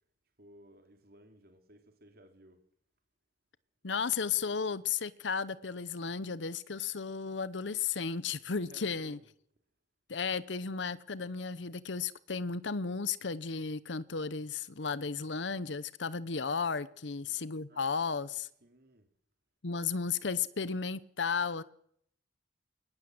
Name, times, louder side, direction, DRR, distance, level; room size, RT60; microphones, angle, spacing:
voice 1, 0.4-2.6 8.6-9.3 17.1-19.1, right 1 dB, 55° right, 2.9 m, -59 dB
voice 2, 3.8-9.2 10.1-18.5 19.6-21.6, left 5 dB, 80° left, 0.9 m, -34 dB
21.5 x 20.0 x 7.8 m
head